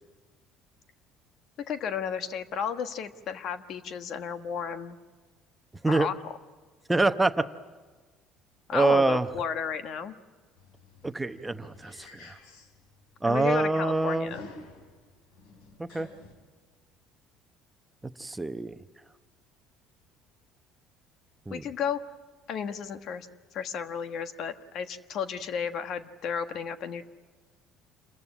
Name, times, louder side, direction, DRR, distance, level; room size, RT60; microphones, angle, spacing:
voice 1, 1.7-5.0 5.9-6.3 8.7-10.1 13.2-14.5 21.5-22.0 22.5-23.3 23.5-27.1, left 7 dB, 60° left, 9 dB, 1.3 m, -33 dB
voice 2, 6.9-7.5 8.7-9.3 11.0-12.4 13.2-14.3 15.8-16.1 18.2-18.8 21.5-21.6, right 2 dB, 10° right, 9 dB, 0.9 m, -25 dB
sound 1, 10.6-16.3, left 2 dB, 85° left, 3.7 m, -52 dB
27.5 x 15.0 x 9.9 m, 1.3 s
supercardioid pair, 95°, 0 cm